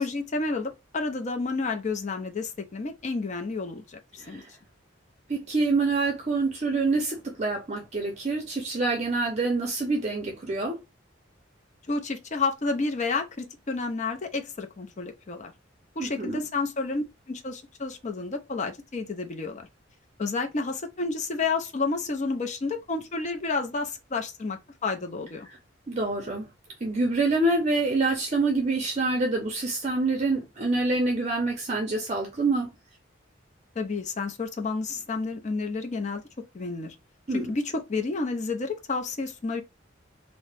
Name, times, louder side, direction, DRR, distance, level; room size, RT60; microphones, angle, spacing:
voice 1, 0.0-4.4 11.9-15.5 16.0-19.7 20.2-25.5 33.8-36.2 36.5-36.9 37.3-39.6, left 3 dB, 35° left, 0.5 m, -30 dB
voice 2, 5.3-10.8 16.0-16.4 25.9-26.5 26.8-32.7 37.3-37.5, right 3 dB, 35° right, 0.5 m, -26 dB
2.8 x 2.0 x 3.3 m
head